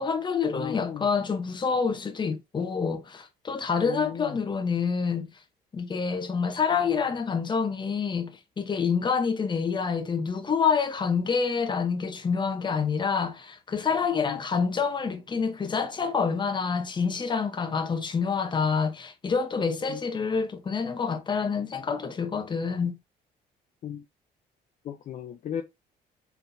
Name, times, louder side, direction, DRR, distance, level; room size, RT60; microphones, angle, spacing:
voice 1, 0.0-5.3 5.7-23.0, left 5 dB, 30° left, 0.9 m, -27 dB
voice 2, 0.5-1.1 3.9-4.4 14.2-14.4 19.9-20.0 23.8-24.0 24.8-25.6, left 9 dB, 50° left, 0.5 m, -35 dB
4.1 x 4.0 x 2.6 m
cardioid pair, 105°, 16 cm